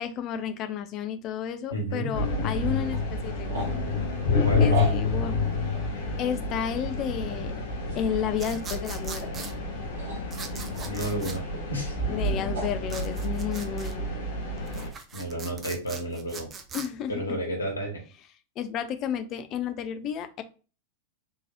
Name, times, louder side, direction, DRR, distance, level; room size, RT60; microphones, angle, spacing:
voice 1, 0.0-3.7 4.6-5.4 5.7-5.8 6.2-7.5 7.9-9.6 12.1-14.1 16.7-17.4 18.6-20.4, left 8 dB, 35° left, 8 dB, 0.5 m, -32 dB
voice 2, 1.7-2.1 4.4-4.7 10.8-11.4 11.7-12.0 15.1-16.5 17.1-18.0, right 1 dB, 80° left, -1 dB, 1.4 m, -31 dB
sound 1, 2.1-14.9, left 3 dB, 55° left, 0.9 m, -29 dB
sound 2, 2.8-12.8, equal, 60° right, 1.6 m, -39 dB
sound 3, 8.4-9.5 10.3-11.4 12.9-13.9 14.6-16.9, right 5 dB, 20° right, 0.6 m, -41 dB
3.6 x 3.2 x 2.4 m, 0.34 s
figure-of-eight pair, 90°, 0 cm